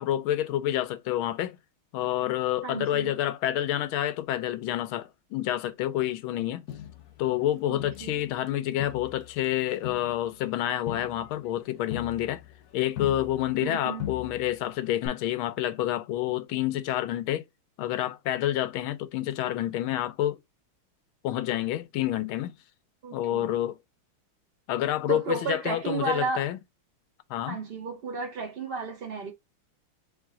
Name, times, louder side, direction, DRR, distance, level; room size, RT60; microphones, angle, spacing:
voice 1, 0.0-1.6 1.9-6.7 7.2-12.4 12.7-17.4 17.8-20.4 21.2-22.6 23.1-23.8 24.7-26.6 27.3-27.6, left 13 dB, 85° left, 1.5 m, -28 dB
voice 2, 2.6-3.1 7.7-8.2 13.6-14.1 23.0-23.5 25.1-26.5 27.5-29.3, right 4 dB, 80° right, 0.5 m, -33 dB
Crowd, 6.7-8.5 8.8-13.7 14.0-14.7 15.0-15.1, left 11 dB, 65° left, 1.0 m, -40 dB
3.6 x 3.3 x 3.6 m
omnidirectional pair, 2.2 m